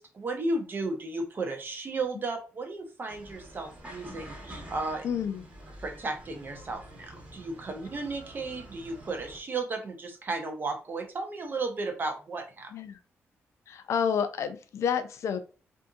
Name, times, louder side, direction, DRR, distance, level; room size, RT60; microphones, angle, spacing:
voice 1, 0.0-5.0 5.8-12.7, right 3 dB, 40° right, 5 dB, 0.7 m, -34 dB
sound 1, 3.1-9.4, right 1 dB, 25° right, 1.1 m, -47 dB
voice 2, 5.0-5.5 12.7-13.0 13.7-15.4, left 7 dB, 75° left, 10 dB, 0.4 m, -29 dB
2.6 x 2.6 x 2.3 m, 0.35 s
cardioid pair, 90°, 5 cm